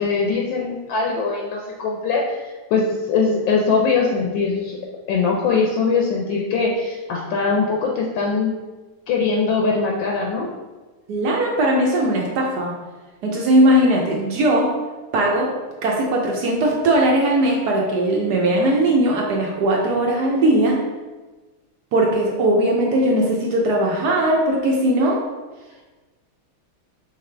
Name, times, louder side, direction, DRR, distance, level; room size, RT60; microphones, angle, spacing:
voice 1, 0.0-4.8 5.1-8.5 9.1-10.5, left 4 dB, 75° left, -1 dB, 1.2 m, -21 dB
voice 2, 11.1-12.8 13.2-14.7 15.1-15.5 15.8-20.8 21.9-25.2, right 1 dB, 70° right, -1 dB, 1.0 m, -19 dB
4.8 x 3.3 x 3.3 m, 1.2 s
omnidirectional pair, 2.2 m